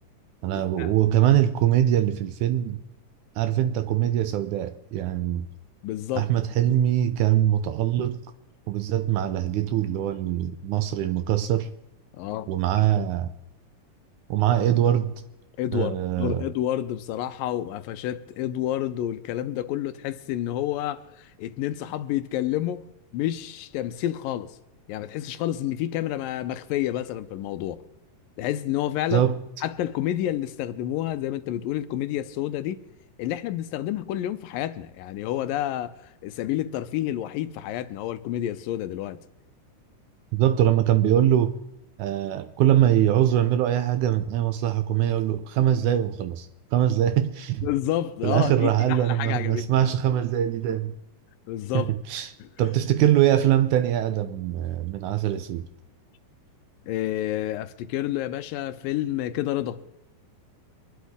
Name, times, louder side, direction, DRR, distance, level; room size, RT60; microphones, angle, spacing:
voice 1, 0.4-2.8 3.4-5.5 6.1-8.2 8.7-11.7 12.5-13.3 14.3-15.2 15.7-16.5 29.1-29.4 40.3-41.5 42.0-47.7 48.2-51.0 51.7-55.7, right 11 dB, 75° right, 1.9 m, -23 dB
voice 2, 5.8-6.3 6.6-6.7 12.2-12.5 15.6-22.9 23.1-24.6 24.9-27.8 28.4-29.3 29.6-32.8 33.2-39.2 47.6-49.9 51.5-51.9 52.4-52.5 56.9-59.8, left 12 dB, 90° left, 2.4 m, -29 dB
24.5 x 11.5 x 3.6 m
omnidirectional pair, 3.9 m